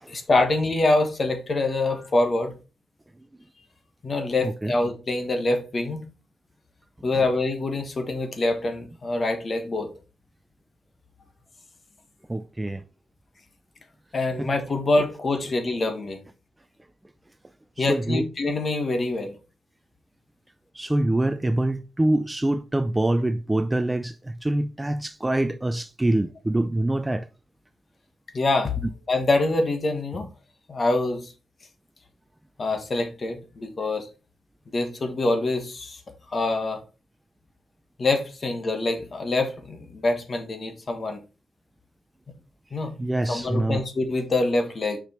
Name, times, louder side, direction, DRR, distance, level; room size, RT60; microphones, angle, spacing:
voice 1, 0.1-2.5 4.0-6.0 7.0-9.9 14.1-16.2 17.8-19.3 28.3-28.7 29.1-30.3 30.7-31.3 32.6-34.1 34.7-36.0 36.3-36.8 38.0-41.2 42.7-42.9 43.3-45.0, left 2 dB, 35° left, 1.4 m, -25 dB
voice 2, 4.4-4.7 7.1-7.3 12.3-12.8 14.4-14.5 15.4-15.5 17.8-18.2 20.7-27.3 43.0-43.9, right 1 dB, 10° right, 0.4 m, -25 dB
6.2 x 5.1 x 4.4 m
wide cardioid pair, 150°, 0 cm